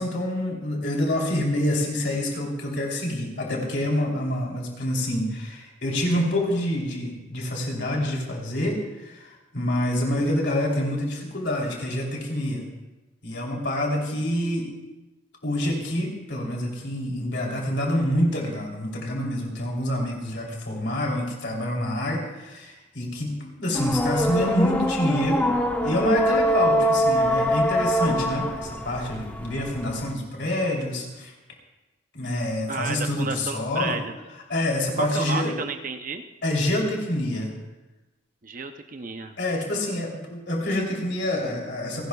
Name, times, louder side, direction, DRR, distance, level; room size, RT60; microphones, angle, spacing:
voice 1, 0.0-12.7 13.2-14.7 15.4-25.4 25.8-31.3 32.1-34.0 34.5-35.6 36.4-37.5 39.4-42.1, left 1 dB, 60° left, -1 dB, 3.3 m, -27 dB
sound 1, 23.7-30.1, equal, 10° left, 1.0 m, -24 dB
voice 2, 32.7-34.1 35.0-36.3 38.4-39.4, right 4 dB, 45° right, 6 dB, 0.7 m, -32 dB
29.0 x 12.0 x 2.4 m, 1.1 s
head